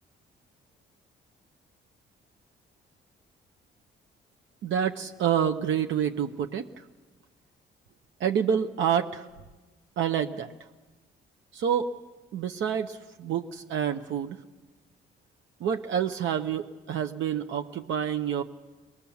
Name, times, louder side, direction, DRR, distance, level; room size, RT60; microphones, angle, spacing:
voice 1, 4.6-6.9 8.2-9.3 10.0-10.5 11.5-11.9 12.3-14.4 15.6-18.4, right 8 dB, 75° right, 6 dB, 0.9 m, -28 dB
22.5 x 20.0 x 7.1 m, 1.2 s
cardioid pair, 90°, 20 cm